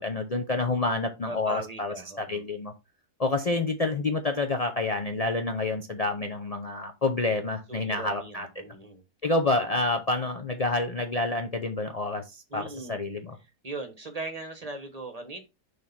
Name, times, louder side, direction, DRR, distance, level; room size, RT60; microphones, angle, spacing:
voice 1, 0.0-2.7 3.2-8.5 9.2-13.4, left 2 dB, 80° left, 5 dB, 0.3 m, -28 dB
voice 2, 1.2-2.4 7.7-9.0 12.5-13.1 13.6-15.4, right 2 dB, 30° right, 6 dB, 0.9 m, -38 dB
6.6 x 3.4 x 5.7 m, 0.25 s
omnidirectional pair, 1.8 m